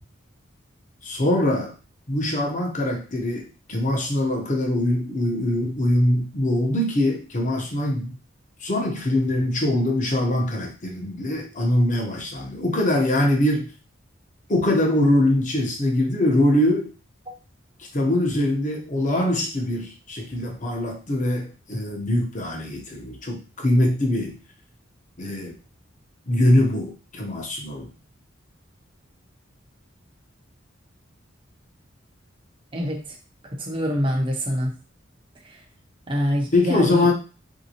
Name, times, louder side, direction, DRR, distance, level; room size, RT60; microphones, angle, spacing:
voice 1, 1.0-1.7 2.1-8.2 8.6-13.7 14.5-16.9 17.8-24.4 25.2-25.5 26.3-27.9 36.5-37.1, left 1 dB, 40° left, 2 dB, 0.8 m, -23 dB
voice 2, 32.7-33.2 33.5-34.7 35.4-35.6 36.1-37.1, equal, 25° right, 0 dB, 0.7 m, -25 dB
3.4 x 2.7 x 2.8 m, 0.34 s
head